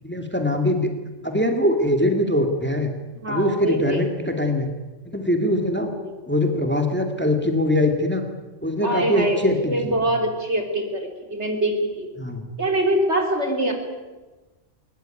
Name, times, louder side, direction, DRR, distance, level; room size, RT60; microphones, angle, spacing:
voice 1, 0.0-0.9 1.2-2.9 3.3-4.7 5.1-5.9 6.3-8.2 8.6-9.9 12.2-12.5, left 1 dB, 10° left, 4 dB, 2.4 m, -22 dB
voice 2, 3.2-4.0 5.9-6.1 8.8-9.4 9.7-12.1 12.6-13.7, right 1 dB, 60° right, 4 dB, 4.0 m, -24 dB
21.0 x 20.5 x 9.2 m, 1.2 s
omnidirectional pair, 1.3 m